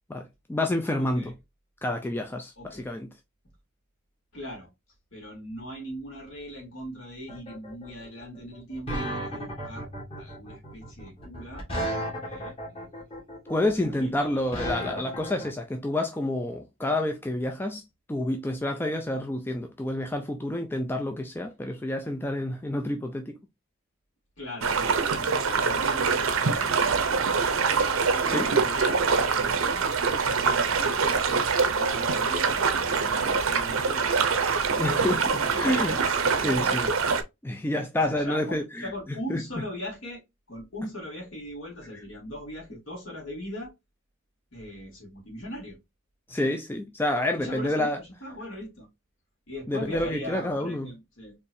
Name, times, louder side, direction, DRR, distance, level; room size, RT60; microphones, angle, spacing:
voice 1, 0.1-1.3 1.8-3.1 13.5-23.4 28.3-28.5 34.8-36.9 37.4-39.4 46.3-48.0 49.7-50.9, left 1 dB, 10° left, 0.3 m, -29 dB
voice 2, 1.0-1.3 2.6-2.9 4.3-4.7 5.1-9.9 10.2-13.0 13.6-14.5 24.4-27.3 27.7-29.9 30.7-36.0 36.4-37.0 37.9-40.2 40.5-43.7 44.5-45.8 47.4-48.9 49.5-51.3, equal, 60° left, 2.4 m, -40 dB
sound 1, 7.3-15.5, equal, 25° left, 1.7 m, -34 dB
sound 2, 24.6-37.2, right 5 dB, 70° right, 0.6 m, -24 dB
4.4 x 3.1 x 2.6 m
head